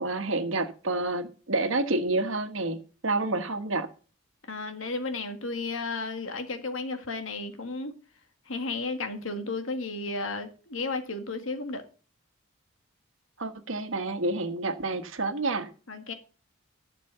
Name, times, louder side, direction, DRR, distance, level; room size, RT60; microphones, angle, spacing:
voice 1, 0.0-2.8 3.0-3.9 13.4-15.7, right 2 dB, 75° right, 1.4 m, -29 dB
voice 2, 4.5-8.0 8.5-11.8 15.9-16.1, left 3 dB, 75° left, 1.8 m, -33 dB
11.5 x 6.8 x 5.5 m
head